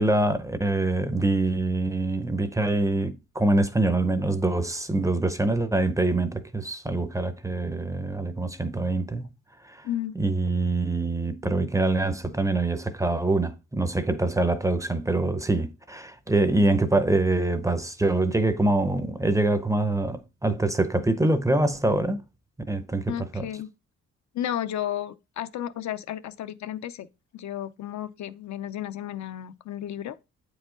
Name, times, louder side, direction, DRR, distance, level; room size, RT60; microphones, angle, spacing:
voice 1, 0.0-9.3 9.6-9.9 10.2-22.2 22.7-23.5, right 2 dB, 10° right, 0.6 m, -25 dB
voice 2, 9.8-10.2 23.1-23.7 24.3-27.1 27.3-30.2, left 11 dB, 70° left, 0.6 m, -33 dB
8.7 x 4.9 x 3.8 m
wide cardioid pair, 155°, 30 cm